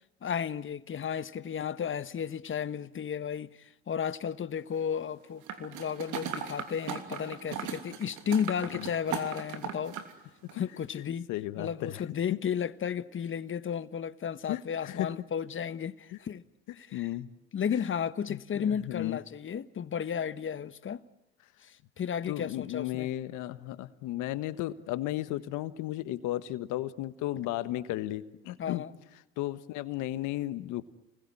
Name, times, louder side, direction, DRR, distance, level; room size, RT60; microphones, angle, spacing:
voice 1, 0.2-10.0 10.5-11.3 11.6-16.4 16.7-17.1 17.5-21.0 21.6-23.1 28.6-28.9, left 8 dB, 40° left, 1.3 m, -33 dB
sound 1, 5.5-10.1 10.5-10.6, right 8 dB, 65° right, 3.1 m, -38 dB
voice 2, 11.3-12.0 14.5-15.1 16.9-17.3 17.7-17.9 18.3-19.2 22.3-28.8 29.4-30.8, left 15 dB, 70° left, 1.5 m, -34 dB
29.0 x 20.5 x 9.9 m
hypercardioid pair, 70°, 32 cm